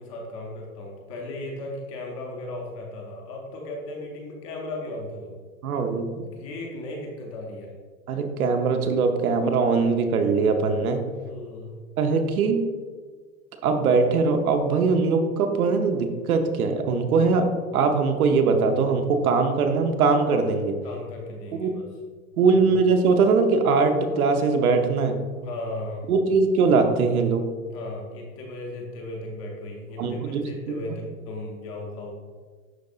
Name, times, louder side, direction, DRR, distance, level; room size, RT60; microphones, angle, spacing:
voice 1, 0.0-5.4 6.2-7.7 11.2-11.8 20.8-21.9 22.5-22.6 25.4-26.1 27.7-32.1, left 2 dB, 25° left, 0 dB, 0.6 m, -36 dB
voice 2, 5.6-6.2 8.1-11.0 12.0-12.6 13.6-17.5 17.7-20.7 21.5-21.7 22.4-25.2 26.1-27.4 30.0-30.4, right 4 dB, 80° right, 5 dB, 1.0 m, -21 dB
11.0 x 3.9 x 2.5 m, 1.5 s
supercardioid pair, 165°, 43 cm